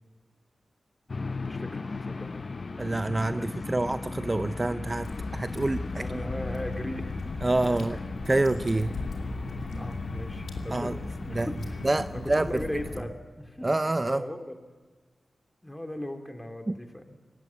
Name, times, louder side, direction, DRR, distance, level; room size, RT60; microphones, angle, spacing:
sound 1, 1.1-12.1, left 4 dB, 55° left, 0.8 m, -37 dB
voice 1, 1.2-2.3 3.4-3.5 5.9-8.1 8.8-8.9 9.7-13.7 14.0-14.6 15.6-17.2, left 1 dB, 15° left, 5 dB, 2.8 m, -38 dB
voice 2, 2.8-6.0 7.4-8.0 8.3-8.9 10.7-11.0 11.3-11.5 11.8-12.6 13.6-14.2 16.7-16.8, right 2 dB, 30° right, 12 dB, 0.5 m, -27 dB
Water / Drip, 5.0-13.0, left 2 dB, 85° left, 2.6 m, -38 dB
19.0 x 16.0 x 9.3 m, 1.5 s
cardioid pair, 45°, 0 cm